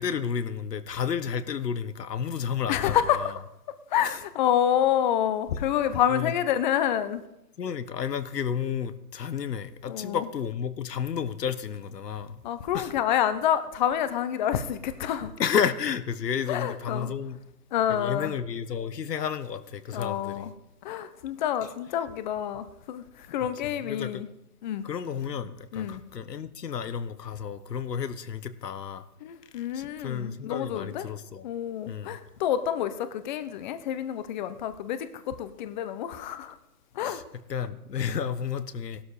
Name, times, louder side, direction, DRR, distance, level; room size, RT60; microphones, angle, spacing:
voice 1, 0.0-3.3 4.0-4.2 6.1-6.3 7.6-12.4 12.7-12.9 15.4-17.4 17.9-20.5 21.6-21.7 23.6-24.2 24.8-29.0 29.6-31.5 31.9-32.2 37.0-37.2 37.5-39.0, left 7 dB, 85° left, 1.4 m, -31 dB
voice 2, 2.7-3.3 3.9-7.2 9.9-10.2 12.4-15.3 16.5-17.1 17.7-18.3 19.9-20.5 20.8-24.3 24.6-24.8 25.7-26.0 29.2-31.1 31.4-36.6 37.0-37.2, left 10 dB, 30° left, 0.9 m, -28 dB
16.5 x 12.5 x 4.9 m
hypercardioid pair, 150°, 47 cm